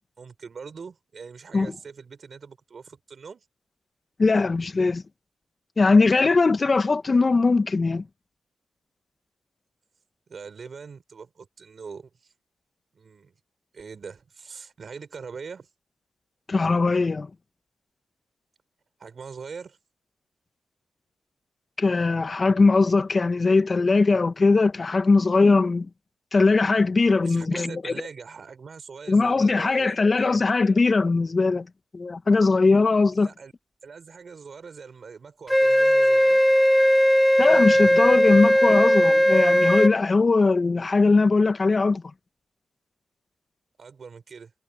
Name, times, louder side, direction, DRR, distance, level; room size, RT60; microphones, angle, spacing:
voice 1, 0.2-3.4 10.3-12.3 12.9-13.3 13.7-15.7 19.0-19.8 27.2-30.5 33.1-33.5 33.8-36.4 43.8-44.5, right 5 dB, 60° right, 4.9 m, -42 dB
voice 2, 4.2-5.0 5.8-8.0 16.5-17.3 21.8-25.9 26.3-27.9 29.1-31.7 31.9-33.3 37.4-42.0, left 3 dB, 45° left, 1.4 m, -20 dB
Wind instrument woodwind instrument, 35.5-39.9, equal, 5° left, 0.9 m, -18 dB
supercardioid pair, 50°, 0 cm